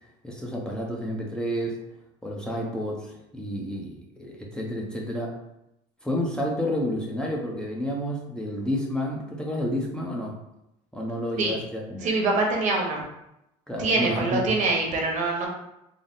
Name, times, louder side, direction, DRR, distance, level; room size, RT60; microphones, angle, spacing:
voice 1, 0.2-1.8 2.2-5.3 6.0-10.3 10.9-12.1 13.7-14.5, equal, 5° left, -2 dB, 0.7 m, -30 dB
voice 2, 12.0-13.0 13.8-15.5, right 3 dB, 60° right, 0 dB, 1.0 m, -24 dB
3.9 x 2.0 x 3.6 m, 0.85 s
cardioid pair, 120°, 15 cm